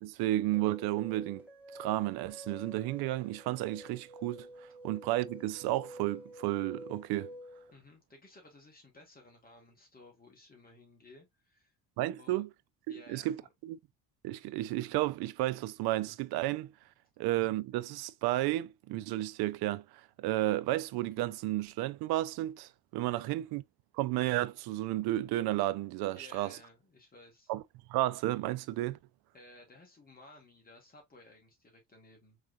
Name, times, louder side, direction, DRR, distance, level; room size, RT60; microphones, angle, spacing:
voice 1, 0.0-1.4 1.7-4.5 4.8-7.3 12.0-12.5 12.9-13.4 13.6-13.8 14.2-16.7 17.2-23.6 23.9-26.6 27.5-27.6 27.9-29.0, right 16 dB, 80° right, 0.5 m, -32 dB
sound 1, 0.5-7.7, right 1 dB, 5° right, 1.4 m, -49 dB
voice 2, 7.7-11.7 12.1-12.4 12.9-13.5 23.1-23.3 26.1-27.5 29.3-32.4, left 2 dB, 25° left, 1.7 m, -57 dB
4.6 x 3.3 x 2.4 m
cardioid pair, 135°, 37 cm